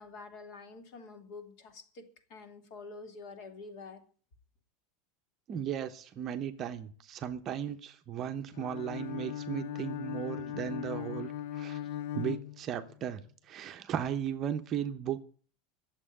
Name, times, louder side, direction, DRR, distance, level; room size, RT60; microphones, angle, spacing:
voice 1, 0.0-4.0, left 3 dB, 50° left, 6 dB, 2.7 m, -47 dB
voice 2, 5.5-11.3 11.6-11.8 12.1-13.2 13.5-15.2, right 9 dB, 25° right, 7 dB, 0.8 m, -36 dB
Bowed string instrument, 8.5-13.1, left 11 dB, 65° left, 0.5 m, -39 dB
11.5 x 7.4 x 9.9 m, 0.44 s
supercardioid pair, 170°, 0 cm